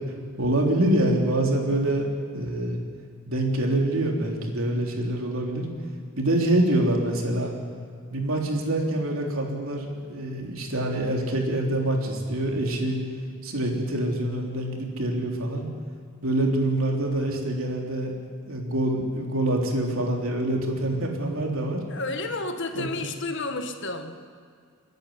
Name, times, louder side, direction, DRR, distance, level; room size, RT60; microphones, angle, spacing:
voice 1, 0.4-2.1 2.3-2.8 3.3-5.7 6.2-7.5 8.1-13.0 13.4-15.7 16.2-18.1 18.5-21.8 22.8-23.1, right 1 dB, 70° right, 0 dB, 3.5 m, -25 dB
voice 2, 21.9-24.2, left 2 dB, 60° left, 6 dB, 1.7 m, -31 dB
29.5 x 10.5 x 9.9 m, 2.1 s
head